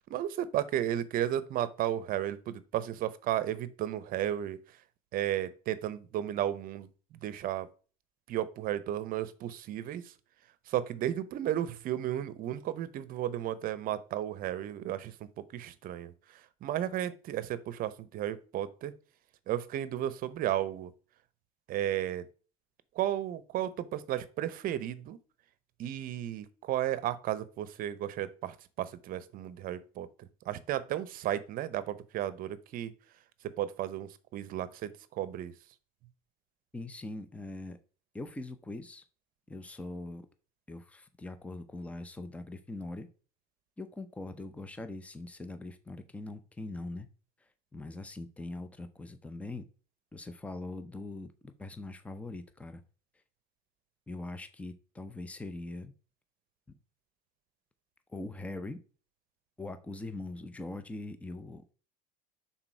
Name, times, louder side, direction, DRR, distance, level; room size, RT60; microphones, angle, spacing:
voice 1, 0.1-4.8 5.1-6.9 7.2-7.7 8.3-10.1 10.7-18.9 19.5-20.9 21.7-22.2 22.9-25.2 25.8-32.9 33.4-35.5, right 12 dB, 50° right, 0.8 m, -34 dB
voice 2, 36.7-37.8 38.1-39.0 39.5-40.3 40.7-43.1 43.8-47.1 47.7-49.6 50.1-52.8 54.1-55.9 58.1-58.8 59.6-61.7, left 2 dB, 5° left, 0.7 m, -42 dB
6.0 x 4.0 x 4.5 m
supercardioid pair, 105°, 19 cm